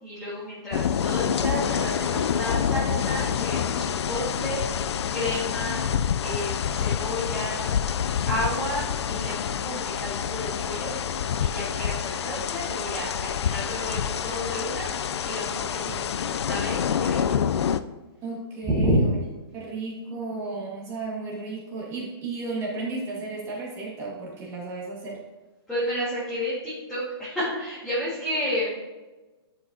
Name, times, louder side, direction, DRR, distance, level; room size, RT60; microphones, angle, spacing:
voice 1, 0.0-4.6 5.1-5.8 6.2-7.7 8.3-10.9 11.4-14.9 15.2-17.4 18.7-19.1 25.7-28.7, equal, ahead, -12 dB, 1.7 m, -31 dB
sound 1, 0.7-17.8, left 8 dB, 85° left, 0.4 m, -27 dB
voice 2, 18.2-19.1 19.5-25.2, right 3 dB, 20° right, -3 dB, 1.7 m, -34 dB
9.7 x 5.2 x 2.8 m, 1.2 s
hypercardioid pair, 160°, 14 cm